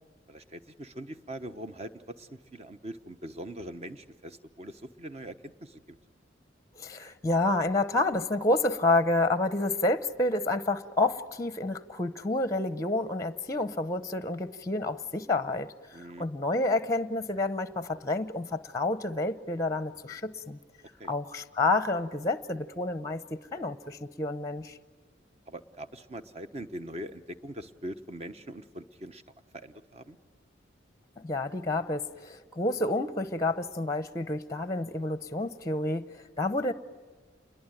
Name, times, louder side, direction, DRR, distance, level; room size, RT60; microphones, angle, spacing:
voice 1, 0.3-6.0 15.9-16.3 21.0-21.1 25.5-29.2 29.5-30.2, right 1 dB, 35° right, 9 dB, 1.1 m, -42 dB
voice 2, 6.8-15.7 16.2-20.6 21.1-24.8 31.2-36.7, left 2 dB, 15° left, 12 dB, 0.7 m, -29 dB
28.5 x 21.5 x 9.1 m, 1.5 s
head